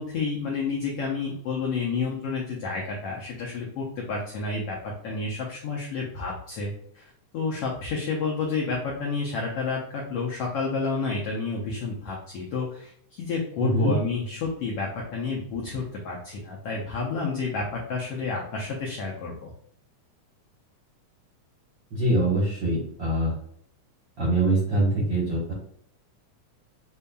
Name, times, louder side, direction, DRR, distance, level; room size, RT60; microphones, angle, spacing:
voice 1, 0.0-7.0 7.3-19.5, left 4 dB, 85° left, -2 dB, 1.3 m, -30 dB
voice 2, 13.6-13.9 21.9-23.3 24.2-25.5, right 1 dB, 60° right, -5 dB, 1.2 m, -24 dB
6.7 x 2.7 x 2.2 m, 0.65 s
omnidirectional pair, 3.6 m